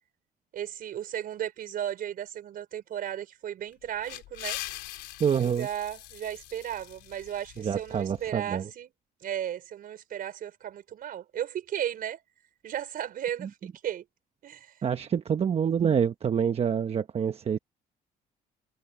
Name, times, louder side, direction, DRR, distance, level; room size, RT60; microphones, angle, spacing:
voice 1, 0.5-4.6 5.4-8.9 9.2-12.2 12.6-13.6 13.8-14.0 14.4-14.7, right 10 dB, 60° right, 4.5 m, -35 dB
sound 1, 3.7-8.3, left 17 dB, 90° left, 3.8 m, -42 dB
voice 2, 5.2-5.7 7.6-8.7 13.4-13.5 14.8-17.6, right 7 dB, 40° right, 1.0 m, -27 dB
cardioid pair, 110°, 17 cm